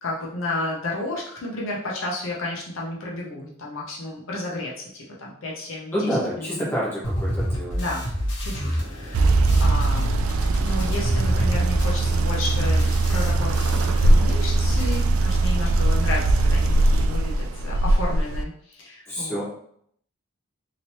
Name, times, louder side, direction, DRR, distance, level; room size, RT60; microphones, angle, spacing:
voice 1, 0.0-6.1 6.4-6.6 7.7-8.1 8.4-9.3 9.6-10.1 10.5-19.4, left 2 dB, 75° left, -3 dB, 0.7 m, -32 dB
voice 2, 5.9-7.8 19.1-19.4, equal, 10° left, -8 dB, 1.2 m, -27 dB
sound 1, 7.0-14.3 14.6-15.0, equal, 60° left, 1.1 m, -28 dB
sound 2, 9.1-18.4, right 2 dB, 85° right, 0.3 m, -21 dB
3.0 x 2.8 x 2.9 m, 0.67 s
head